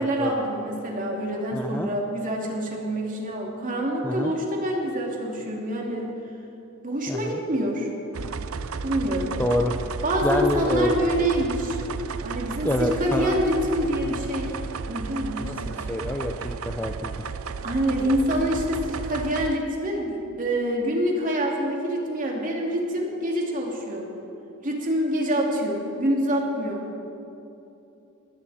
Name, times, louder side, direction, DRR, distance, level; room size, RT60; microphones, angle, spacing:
voice 1, 0.0-6.1 6.8-7.9 8.8-9.3 10.0-11.8 12.2-14.5 14.9-15.5 17.6-24.0 24.6-26.9, equal, 40° right, -1 dB, 2.8 m, -26 dB
voice 2, 1.5-1.9 4.0-4.3 7.1-7.4 9.4-9.7 10.2-10.9 12.6-13.5 14.0-14.1 15.4-17.1, left 1 dB, 10° left, 4 dB, 0.6 m, -27 dB
sound 1, 8.1-19.6, right 5 dB, 75° right, 0.6 m, -33 dB
19.5 x 16.5 x 4.3 m, 2.9 s
head